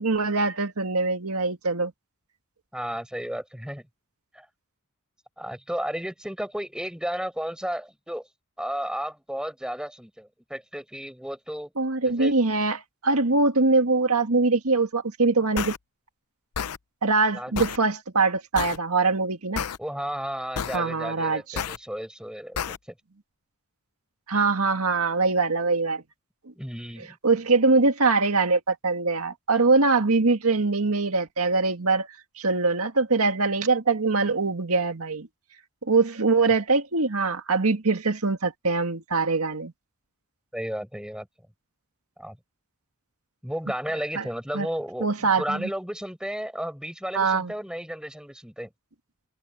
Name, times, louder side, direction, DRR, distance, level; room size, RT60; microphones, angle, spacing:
voice 1, 0.0-1.9 11.8-15.7 17.0-19.7 20.7-21.6 24.3-26.0 27.0-32.1 32.4-35.3 35.8-39.7 44.2-44.3 44.5-44.7 45.0-45.7 47.1-47.5, right 3 dB, 80° right, 1.8 m, -23 dB
voice 2, 2.7-3.8 4.3-4.5 5.4-8.3 8.6-11.7 12.0-12.3 17.3-17.5 19.8-22.7 26.6-27.2 40.5-41.3 42.2-42.4 43.4-48.7, equal, 5° right, 6.2 m, -33 dB
sound 1, 15.6-15.8 16.6-16.8 17.6-17.8 18.6-18.8 19.6-19.8 20.6-20.8 21.6-21.8 22.6-22.8, left 7 dB, 90° left, 0.7 m, -29 dB
head